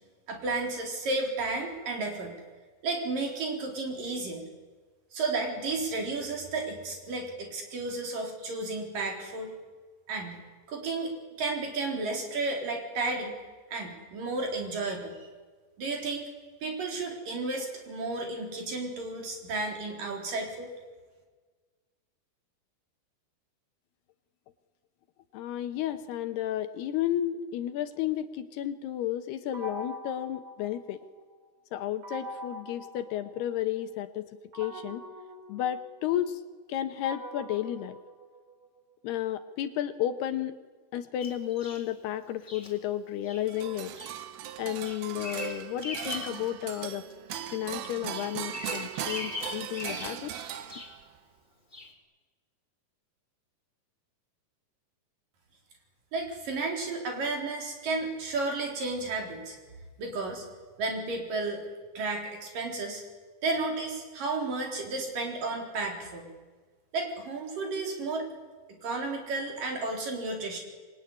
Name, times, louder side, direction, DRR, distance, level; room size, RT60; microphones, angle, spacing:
voice 1, 0.3-2.4 2.8-4.5 5.1-9.5 10.1-10.4 10.7-13.4 13.7-15.3 15.8-16.3 16.6-20.7 56.1-59.6 60.0-60.5 60.8-61.6 62.0-63.0 63.4-66.3 66.9-68.3 68.8-70.6, right 3 dB, 50° right, 2 dB, 5.5 m, -32 dB
voice 2, 25.3-31.0 31.7-34.3 34.5-35.0 35.5-36.4 36.7-38.0 39.0-40.6 40.9-43.9 44.6-47.0 47.5-50.3, left 11 dB, 75° left, 9 dB, 3.0 m, -32 dB
sound 1, 29.5-31.3 32.0-33.8 34.5-38.8, equal, 35° right, 3.8 m, -44 dB
Bird vocalization bird call bird song, 41.2-41.9 42.5-42.7 43.2-43.4 43.9-44.2 44.6-46.4 46.8-47.6 47.9-51.0 51.7-51.9, left 3 dB, 10° left, 2.8 m, -40 dB
sound 2, 43.5-51.2, right 10 dB, 70° right, 2.7 m, -39 dB
26.5 x 22.0 x 9.9 m, 1.4 s
omnidirectional pair, 4.9 m